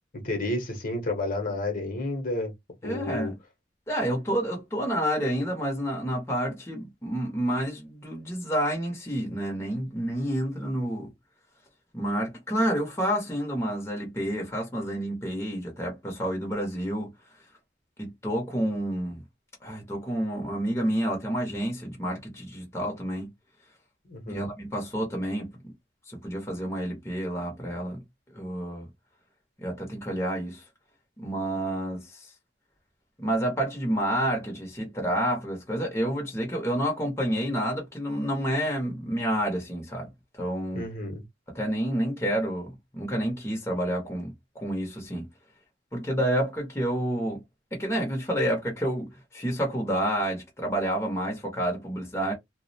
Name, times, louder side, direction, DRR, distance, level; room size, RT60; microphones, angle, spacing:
voice 1, 0.1-2.5 2.8-3.3 24.0-24.5 40.7-41.2, left 2 dB, 50° left, 0.8 m, -31 dB
voice 2, 2.8-3.4 3.9-11.1 11.9-17.1 18.0-19.2 19.6-23.3 24.3-25.7 26.1-28.0 28.3-28.9 29.6-30.6 31.2-32.3 33.2-40.9 41.5-45.3 45.9-47.4 47.7-52.3, right 1 dB, 15° left, 0.7 m, -29 dB
2.3 x 2.1 x 2.6 m
head